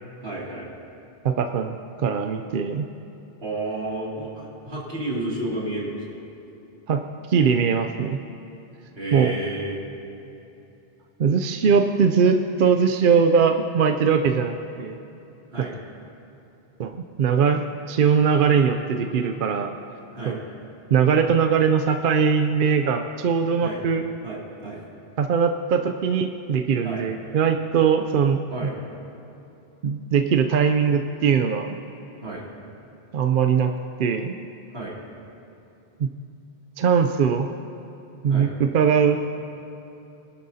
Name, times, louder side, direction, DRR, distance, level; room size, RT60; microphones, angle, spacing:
voice 1, 0.2-0.7 3.4-6.0 8.9-9.8 15.5-15.8 20.1-20.4 23.6-23.8 24.2-24.8 26.8-27.1 28.5-28.8 32.2-32.4 34.7-35.0 38.3-38.5, right 2 dB, 75° right, -5 dB, 2.9 m, -31 dB
voice 2, 1.2-1.8 2.0-2.9 6.9-8.2 9.1-9.3 11.2-14.9 15.6-15.7 16.8-19.7 20.2-20.4 20.9-24.0 25.2-28.7 29.8-31.8 33.1-33.7 34.0-34.3 36.0-36.1 36.8-37.5 38.2-39.2, right 6 dB, 60° right, 5 dB, 0.7 m, -21 dB
24.0 x 11.5 x 2.8 m, 2.9 s
omnidirectional pair, 1.0 m